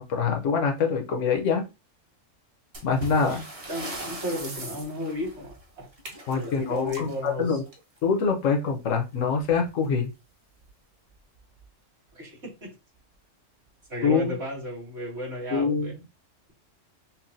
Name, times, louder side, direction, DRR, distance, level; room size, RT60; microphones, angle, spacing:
voice 1, 0.0-1.6 2.8-3.4 6.3-7.6 8.0-10.1 14.0-14.3 15.5-15.9, left 5 dB, 75° left, 4 dB, 1.1 m, -25 dB
sound 1, 2.7-8.1 9.4-9.5 9.8-9.9 10.6-10.7 11.4-11.6, right 1 dB, 30° right, 0.9 m, -40 dB
voice 2, 3.7-5.9 6.3-7.6 12.1-12.7 13.9-15.9, left 1 dB, 60° right, -5 dB, 2.7 m, -34 dB
5.7 x 2.2 x 2.6 m, 0.27 s
omnidirectional pair, 1.3 m